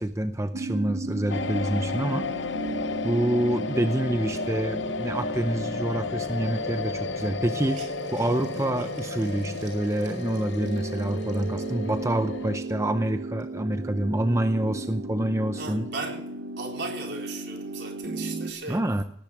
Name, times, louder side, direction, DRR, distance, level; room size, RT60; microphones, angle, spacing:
voice 1, 0.0-2.3 3.0-15.9 18.7-19.0, right 1 dB, 15° right, 0.6 m, -27 dB
sound 1, 0.5-18.5, right 2 dB, 85° right, 2.3 m, -36 dB
sound 2, 1.3-12.6, left 5 dB, 80° left, 0.8 m, -33 dB
Hiss, 6.6-6.7 7.1-12.2 12.7-12.8 13.2-14.6, right 4 dB, 45° right, 4.9 m, -52 dB
voice 2, 15.6-16.3 16.6-18.9, right 3 dB, 65° right, 3.9 m, -36 dB
18.0 x 10.5 x 6.2 m
head